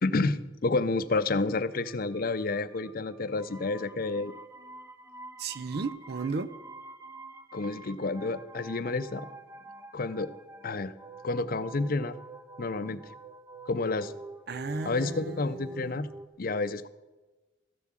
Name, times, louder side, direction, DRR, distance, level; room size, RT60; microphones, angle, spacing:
voice 1, 0.0-4.3 7.5-9.3 9.9-10.3 10.6-10.9 11.2-12.2 12.6-13.0 13.7-14.1 14.8-16.1 16.4-16.9, left 3 dB, 50° left, 13 dB, 0.6 m, -30 dB
sound 1, 1.3-16.3, right 2 dB, 15° right, 0.6 m, -47 dB
voice 2, 5.4-6.5 14.5-16.0, right 4 dB, 55° right, 14 dB, 0.5 m, -35 dB
13.5 x 7.3 x 7.4 m, 1.2 s
head